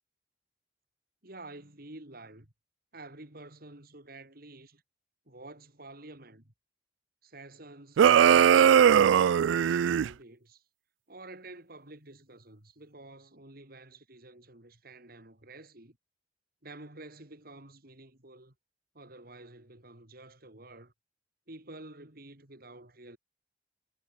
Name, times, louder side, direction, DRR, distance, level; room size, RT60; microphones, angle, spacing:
voice 1, 1.2-2.5 2.9-4.8 5.3-6.5 7.2-10.6 11.1-16.0 16.6-18.5 18.9-20.9 21.5-23.2, right 2 dB, 55° right, 3.8 m, -50 dB
sound 1, 8.0-10.1, right 8 dB, 90° right, 0.3 m, -20 dB
head